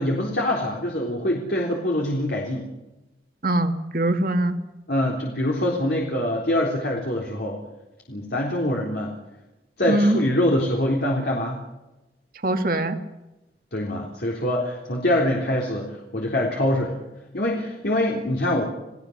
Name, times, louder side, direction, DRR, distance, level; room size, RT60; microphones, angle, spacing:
voice 1, 0.0-2.7 4.9-7.6 8.1-9.1 9.8-11.6 13.7-17.0 17.3-18.6, left 1 dB, 60° left, -1 dB, 3.8 m, -24 dB
voice 2, 3.4-4.6 9.9-10.2 12.4-13.0, right 1 dB, 50° right, 6 dB, 2.1 m, -22 dB
29.5 x 18.0 x 6.7 m, 1.0 s
head